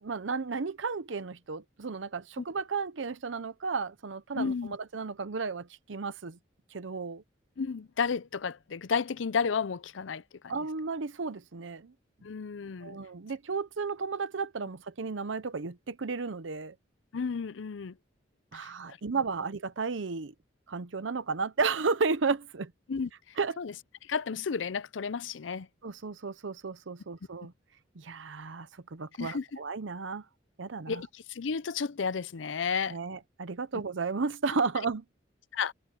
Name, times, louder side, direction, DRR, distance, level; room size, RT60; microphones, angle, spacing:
voice 1, 0.0-6.4 6.7-7.2 10.5-11.9 12.8-16.7 18.5-20.3 20.7-22.7 23.4-23.6 25.8-27.5 28.0-30.2 30.6-31.0 32.9-35.0, right 4 dB, 90° right, 0.7 m, -33 dB
voice 2, 4.3-4.8 7.6-10.5 12.2-13.0 17.1-18.0 18.5-19.0 22.9-23.1 23.6-23.7 24.0-25.7 29.2-29.5 30.9-33.0 35.5-35.7, left 5 dB, 85° left, 0.6 m, -32 dB
head